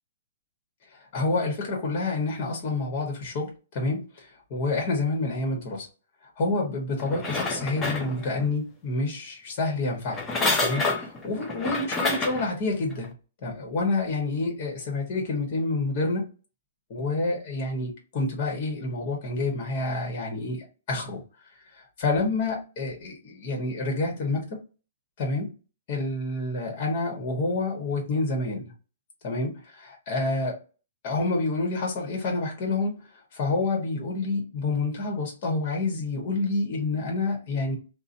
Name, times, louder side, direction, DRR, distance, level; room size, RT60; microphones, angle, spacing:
voice 1, 1.1-5.9 6.4-10.2 10.6-13.1 13.4-16.3 16.9-21.2 21.7-24.6 25.2-25.5 25.9-28.7 29.2-30.6 31.0-33.0 33.3-37.8, left 3 dB, 45° left, 1.2 m, -28 dB
sound 1, 7.0-8.5 10.1-12.5 13.0-13.1, left 3 dB, 20° left, 0.8 m, -28 dB
3.8 x 2.2 x 2.6 m
figure-of-eight pair, 120°, 0 cm